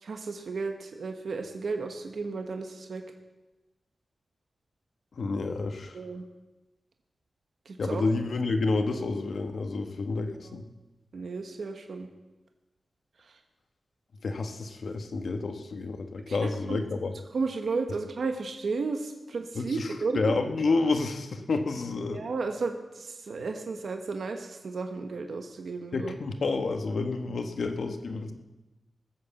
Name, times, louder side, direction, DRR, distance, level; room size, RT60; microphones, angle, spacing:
voice 1, 0.0-3.0 5.9-6.2 7.6-8.1 10.4-10.6 11.1-12.1 13.3-13.4 16.3-16.9 17.3-20.3 22.1-26.2, right 4 dB, 70° right, 5 dB, 1.2 m, -33 dB
voice 2, 5.2-6.0 7.8-10.6 14.2-17.1 19.5-19.9 20.1-22.2 25.9-28.3, left 3 dB, 70° left, 6 dB, 1.4 m, -29 dB
19.0 x 8.1 x 7.1 m, 1.1 s
wide cardioid pair, 155°, 0 cm